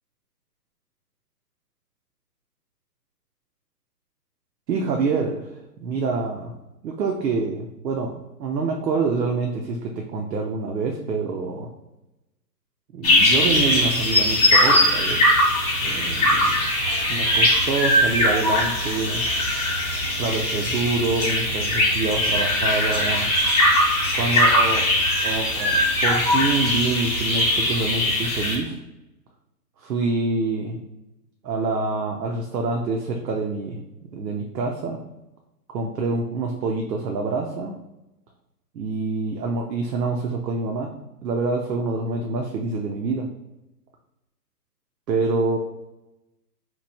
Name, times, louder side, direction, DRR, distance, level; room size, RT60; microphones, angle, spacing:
voice 1, 4.7-5.5 5.8-6.5 6.8-11.7 12.9-15.3 15.8-16.7 17.1-19.2 20.2-23.3 24.1-24.8 25.2-28.8 29.8-30.8 31.4-33.8 34.1-35.0 35.7-37.8 38.7-40.9 41.2-43.3 45.1-45.6, right 3 dB, 85° right, 2 dB, 0.7 m, -26 dB
sound 1, 13.0-28.6, left 1 dB, 25° left, 0.7 m, -20 dB
3.0 x 2.1 x 4.0 m, 0.95 s
hypercardioid pair, 155°, 48 cm